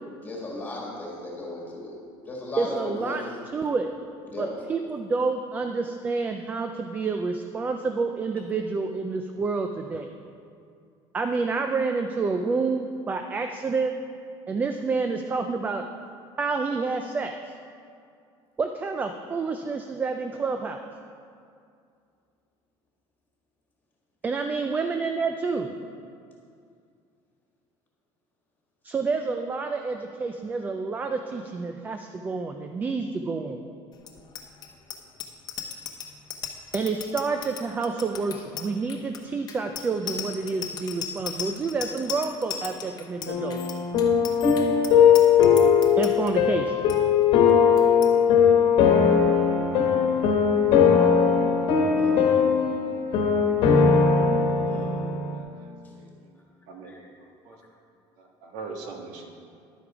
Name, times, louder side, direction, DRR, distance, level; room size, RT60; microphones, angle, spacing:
voice 1, 0.2-1.9 2.3-3.2 4.3-4.5 51.9-52.2 54.7-54.9 56.8-57.0, left 1 dB, 15° left, -3 dB, 1.8 m, -35 dB
voice 2, 2.6-3.2 3.5-3.9 4.4-10.1 11.1-13.9 14.5-15.8 16.4-17.3 18.6-20.8 24.2-25.7 28.8-33.6 36.7-43.8 46.0-46.8, right 4 dB, 15° right, 5 dB, 0.3 m, -28 dB
Bicycle bell, 34.0-46.3 46.7-47.0 47.2-47.5 47.8-48.1, left 8 dB, 40° left, 0.9 m, -36 dB
sound 1, 43.3-55.4, left 6 dB, 55° left, 1.3 m, -20 dB
voice 3, 55.3-56.1 56.7-57.6 58.2-59.3, right 4 dB, 75° right, 2 dB, 1.5 m, -42 dB
11.0 x 8.4 x 4.9 m, 2.4 s
cardioid pair, 175°, 11 cm